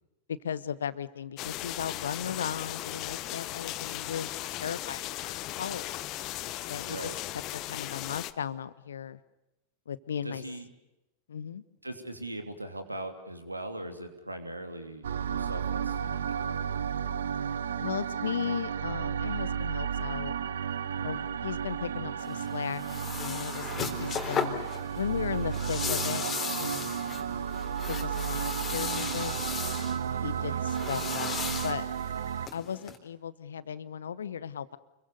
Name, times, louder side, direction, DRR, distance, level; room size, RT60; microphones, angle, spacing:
voice 1, 0.3-5.8 6.7-7.0 7.5-9.2 9.9-10.4 11.3-11.6 17.8-20.4 21.0-22.8 23.2-24.6 24.9-27.0 27.9-29.4 30.2-31.4 31.6-31.9 32.5-34.8, left 8 dB, 65° left, 17 dB, 1.1 m, -36 dB
sound 1, 1.4-8.3, left 15 dB, 40° left, 1.1 m, -37 dB
voice 2, 6.8-7.2 10.2-10.7 11.8-16.9 20.9-21.3 30.3-30.6, right 1 dB, 85° right, 7 dB, 3.0 m, -41 dB
sound 2, 15.0-32.5, right 8 dB, 65° right, 0.9 m, -33 dB
sound 3, 22.2-33.0, left 6 dB, 25° left, 3.7 m, -37 dB
29.5 x 22.5 x 6.8 m, 0.97 s
figure-of-eight pair, 90°, 0 cm